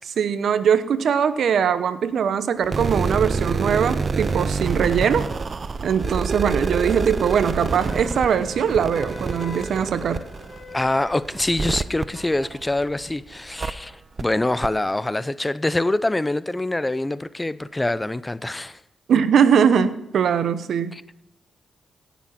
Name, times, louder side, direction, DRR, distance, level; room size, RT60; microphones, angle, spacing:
voice 1, 0.0-5.3 5.8-10.2 19.1-21.0, right 7 dB, 70° right, 0.9 m, -21 dB
sound 1, 2.6-13.0 13.6-13.7 14.2-14.3 14.6-14.7, right 4 dB, 45° right, 0.7 m, -27 dB
Wind instrument woodwind instrument, 7.9-11.3, left 2 dB, 40° left, 4.2 m, -42 dB
voice 2, 10.7-18.8 20.9-21.2, left 2 dB, 15° left, 0.6 m, -25 dB
17.5 x 7.2 x 6.0 m
supercardioid pair, 55°, 0 cm